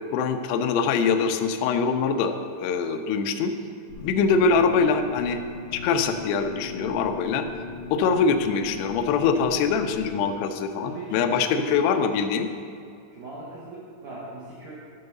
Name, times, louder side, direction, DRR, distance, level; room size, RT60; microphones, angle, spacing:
voice 1, 0.1-3.5 4.0-5.4 5.7-7.5 7.9-12.5, left 5 dB, 80° left, 6 dB, 2.6 m, -23 dB
sound 1, 3.9-10.3, left 4 dB, 55° left, 2.4 m, -38 dB
voice 2, 10.8-11.9 13.1-14.7, right 2 dB, 65° right, -6 dB, 2.2 m, -39 dB
11.5 x 3.9 x 6.6 m, 2.5 s
omnidirectional pair, 5.1 m